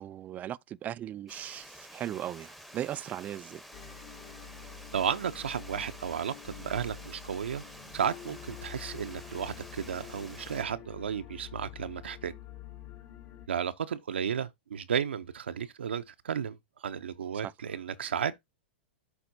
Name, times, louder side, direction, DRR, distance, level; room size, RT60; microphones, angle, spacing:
voice 1, 0.0-3.6 17.4-17.5, right 11 dB, 25° right, 0.3 m, -38 dB
Water, 1.3-10.6, equal, ahead, 0.9 m, -50 dB
sound 1, 3.7-13.5, left 9 dB, 45° left, 1.7 m, -47 dB
voice 2, 4.9-7.6 7.9-12.3 13.5-16.6 16.8-18.4, right 8 dB, 85° right, 0.5 m, -33 dB
12.0 x 4.1 x 2.6 m
hypercardioid pair, 115°, 6 cm